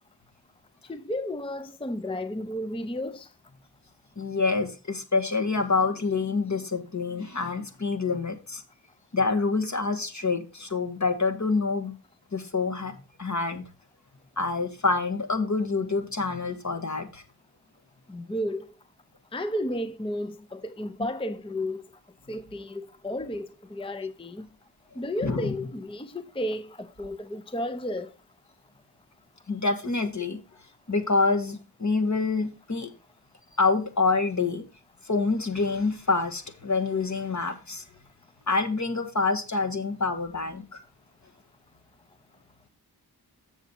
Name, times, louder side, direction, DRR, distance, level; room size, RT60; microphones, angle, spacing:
voice 1, 0.9-3.3 18.1-18.7 19.3-21.8 22.3-24.5 25.0-28.1, left 1 dB, 15° left, 0.5 m, -33 dB
voice 2, 4.2-8.6 9.1-11.9 12.3-12.9 13.2-13.6 14.4-17.2 25.2-25.5 29.5-30.4 30.9-32.9 33.6-34.6 35.0-37.8 38.5-40.8, left 4 dB, 45° left, 1.6 m, -27 dB
7.2 x 7.0 x 4.3 m
wide cardioid pair, 45°, 38 cm